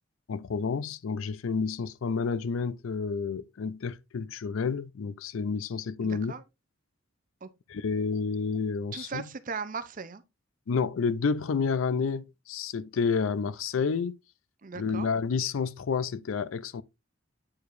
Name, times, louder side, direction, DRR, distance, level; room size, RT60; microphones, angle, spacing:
voice 1, 0.3-6.3 7.7-9.2 10.7-14.2 14.7-16.8, left 5 dB, 70° left, 0.4 m, -30 dB
voice 2, 6.0-6.4 7.4-7.5 8.9-10.2 14.6-15.1, right 5 dB, 40° right, 0.5 m, -37 dB
8.6 x 4.7 x 2.5 m
head